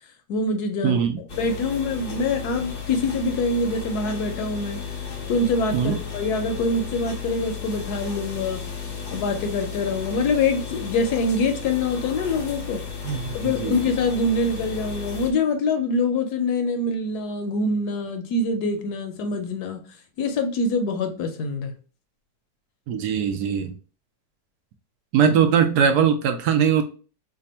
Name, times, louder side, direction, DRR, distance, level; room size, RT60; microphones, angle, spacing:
voice 1, 0.3-1.0 1.4-4.8 5.3-8.6 9.1-12.8 13.3-19.8 20.2-21.7, left 3 dB, 70° left, 6 dB, 1.1 m, -25 dB
voice 2, 0.8-1.2 5.7-6.0 13.0-13.8 22.9-23.7 25.1-26.8, right 7 dB, 75° right, 6 dB, 1.1 m, -21 dB
sound 1, 1.3-15.3, left 6 dB, 55° left, 0.6 m, -34 dB
3.4 x 2.1 x 4.1 m, 0.37 s
omnidirectional pair, 1.9 m